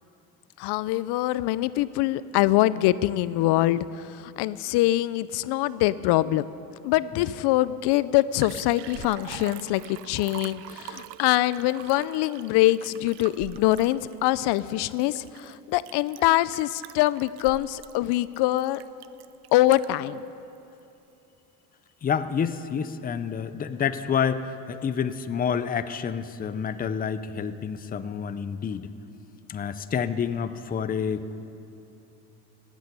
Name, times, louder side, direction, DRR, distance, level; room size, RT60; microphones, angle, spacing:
voice 1, 0.6-6.5 6.8-18.8 19.5-20.2, left 16 dB, 70° left, 17 dB, 0.5 m, -24 dB
Liquid, 7.9-8.0 8.2-20.1 20.5-20.6, right 14 dB, 70° right, 0.7 m, -44 dB
voice 2, 22.0-28.9 29.5-31.3, left 7 dB, 20° left, 11 dB, 0.5 m, -28 dB
16.0 x 8.3 x 9.9 m, 2.8 s
cardioid pair, 120°, 41 cm